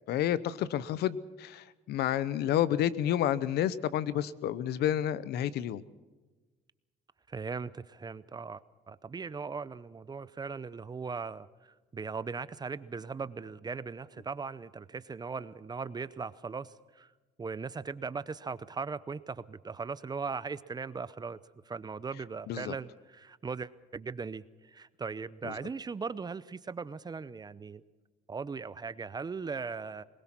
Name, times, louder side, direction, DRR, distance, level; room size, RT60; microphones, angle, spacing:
voice 1, 0.1-5.8 22.5-22.7 25.4-25.5, left 11 dB, 75° left, 17 dB, 0.9 m, -30 dB
voice 2, 7.3-8.6 8.9-17.1 17.4-27.8 28.3-30.0, right 5 dB, 25° right, 17 dB, 0.7 m, -39 dB
22.0 x 20.0 x 6.0 m, 1.3 s
cardioid pair, 110°, 17 cm